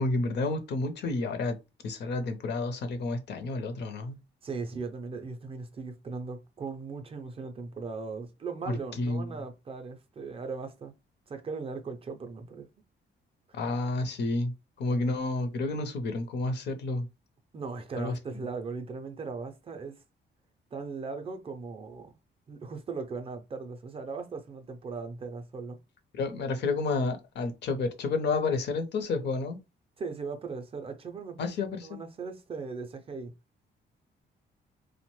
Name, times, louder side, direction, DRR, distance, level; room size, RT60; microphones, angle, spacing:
voice 1, 0.0-1.6 1.8-4.2 8.7-9.3 13.5-17.1 18.0-18.5 26.1-29.6 31.4-32.0, left 3 dB, 65° left, 0.6 m, -30 dB
voice 2, 4.4-10.9 11.3-12.7 17.5-20.0 20.7-22.1 22.5-25.8 30.0-33.3, right 4 dB, 30° right, 0.4 m, -38 dB
2.8 x 2.1 x 3.0 m
cardioid pair, 145°, 19 cm